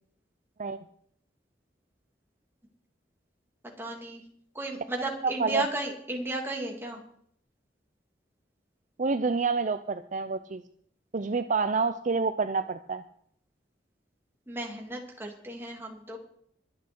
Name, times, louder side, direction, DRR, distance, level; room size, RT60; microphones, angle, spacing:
voice 1, 3.6-4.2 4.5-7.0 14.5-16.2, right 2 dB, 15° right, 0 dB, 2.8 m, -34 dB
voice 2, 5.2-5.7 9.0-10.6 11.1-13.0, right 4 dB, 45° right, 10 dB, 0.6 m, -28 dB
22.5 x 8.4 x 4.6 m, 0.64 s
head